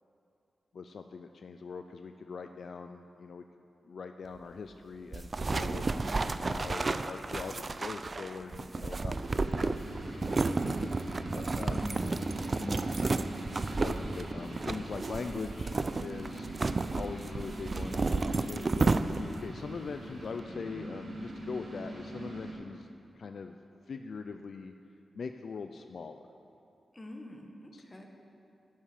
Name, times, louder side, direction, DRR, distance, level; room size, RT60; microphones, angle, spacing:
voice 1, 0.7-3.4 3.8-5.9 6.1-9.8 10.2-10.9 11.2-11.8 13.7-15.7 16.0-16.5 17.0-18.9 19.2-22.9 23.2-23.6 23.9-24.7 25.1-26.3 27.7-27.8, left 5 dB, 70° left, 7 dB, 0.4 m, -42 dB
sound 1, 5.1-19.5, right 3 dB, 45° right, 0.4 m, -32 dB
sound 2, 9.2-22.5, right 1 dB, 65° right, 2.5 m, -43 dB
voice 2, 11.7-12.2 12.6-12.9 26.9-28.1, left 1 dB, 30° left, 2 dB, 1.6 m, -43 dB
8.5 x 7.3 x 8.4 m, 2.7 s
cardioid pair, 50°, 0 cm